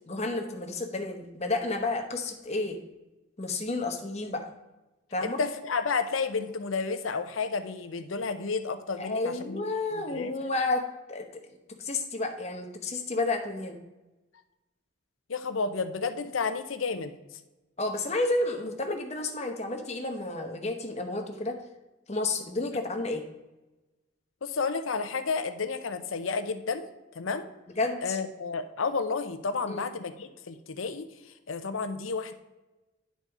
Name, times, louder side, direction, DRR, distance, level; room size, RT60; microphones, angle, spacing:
voice 1, 0.1-2.8 3.4-4.5 5.1-5.4 9.0-10.8 11.1-13.8 17.8-21.6 22.1-23.2 27.8-28.2 29.7-29.8, left 2 dB, 35° left, 4 dB, 1.0 m, -31 dB
voice 2, 5.2-9.6 9.9-10.3 15.3-17.2 24.4-26.9 27.1-27.5 28.0-31.1 31.5-32.3, left 4 dB, 90° left, 10 dB, 0.7 m, -31 dB
10.0 x 4.1 x 4.7 m, 1.1 s
head